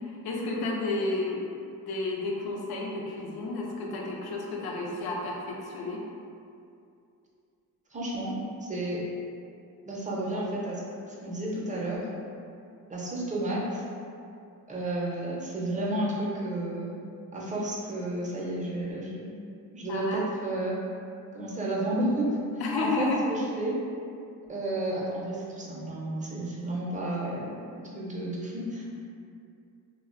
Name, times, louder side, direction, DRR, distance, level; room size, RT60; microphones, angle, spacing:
voice 1, 0.2-1.4 1.9-6.0 19.9-20.2 22.6-23.3, left 2 dB, 75° left, -1 dB, 0.5 m, -31 dB
voice 2, 7.9-8.4 8.6-9.0 9.9-10.8 11.1-12.1 12.9-13.8 14.7-16.9 17.3-19.3 19.7-20.8 21.3-22.4 22.8-23.8 24.5-28.9, right 1 dB, 20° right, -5 dB, 0.5 m, -31 dB
2.4 x 2.1 x 2.4 m, 2.5 s
cardioid pair, 75°, 37 cm